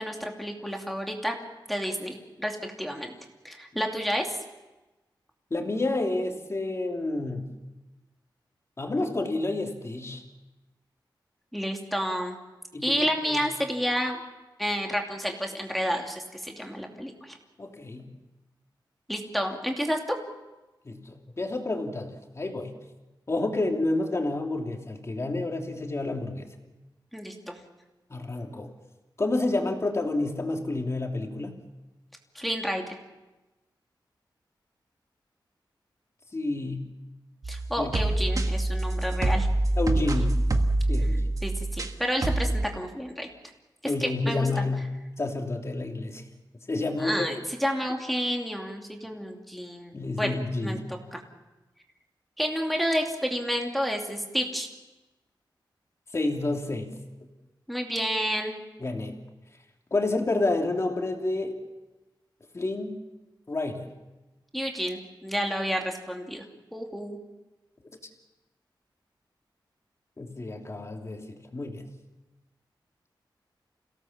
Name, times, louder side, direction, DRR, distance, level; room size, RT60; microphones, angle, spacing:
voice 1, 0.0-1.3 1.7-3.1 3.4-4.4 11.5-12.4 12.8-14.2 14.6-17.4 19.1-20.2 27.1-27.6 32.3-32.8 37.5-39.5 39.9-40.3 41.4-43.3 44.0-44.7 47.0-50.8 51.1-51.2 52.4-54.7 57.7-58.5 64.5-66.4 66.7-67.2, equal, ahead, 1 dB, 2.7 m, -30 dB
voice 2, 5.5-7.5 8.8-10.2 12.7-13.4 17.6-18.1 20.8-22.7 23.3-26.5 28.1-28.7 29.2-31.6 36.3-36.8 37.8-37.9 39.8-40.4 40.9-41.3 43.8-44.9 45.2-46.2 46.7-47.3 49.9-51.0 56.1-56.9 58.8-59.2 59.9-61.6 62.5-63.0 63.5-63.9 70.2-71.3 71.5-71.9, left 2 dB, 35° left, 2 dB, 3.0 m, -29 dB
sound 1, 37.4-41.9 42.2-42.7, right 2 dB, 45° right, 1.7 m, -25 dB
28.5 x 17.5 x 7.3 m, 1.1 s
wide cardioid pair, 120°, 8 cm